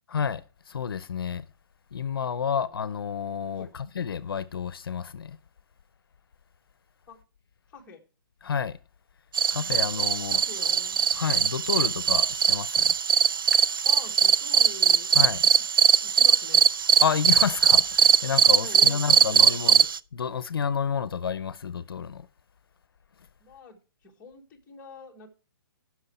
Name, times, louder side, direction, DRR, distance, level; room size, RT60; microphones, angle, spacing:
voice 1, 0.1-1.5 1.9-5.4 8.4-8.8 9.5-10.4 11.1-12.9 15.1-15.4 17.0-19.9 20.1-22.3, left 7 dB, 75° left, 0.7 m, -30 dB
voice 2, 2.5-2.8 3.5-3.7 7.1-7.2 7.7-8.0 9.9-10.1 10.3-11.1 13.8-15.1 15.5-15.7 16.0-16.7 18.6-19.9 23.4-25.3, left 3 dB, 10° left, 1.4 m, -46 dB
sound 1, 9.3-20.0, right 7 dB, 65° right, 0.4 m, -21 dB
14.0 x 6.3 x 4.3 m
hypercardioid pair, 170°, 12 cm